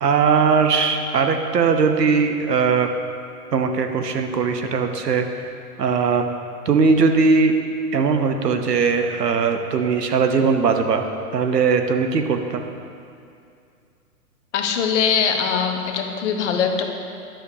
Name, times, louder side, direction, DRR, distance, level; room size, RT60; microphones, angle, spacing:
voice 1, 0.0-2.9 3.5-5.3 5.8-6.3 6.7-7.5 7.9-11.0 11.3-12.6, right 5 dB, 90° right, 6 dB, 0.9 m, -19 dB
voice 2, 14.5-16.9, left 7 dB, 50° left, 4 dB, 0.8 m, -22 dB
10.0 x 6.7 x 2.7 m, 2.4 s
hypercardioid pair, 125°, 47 cm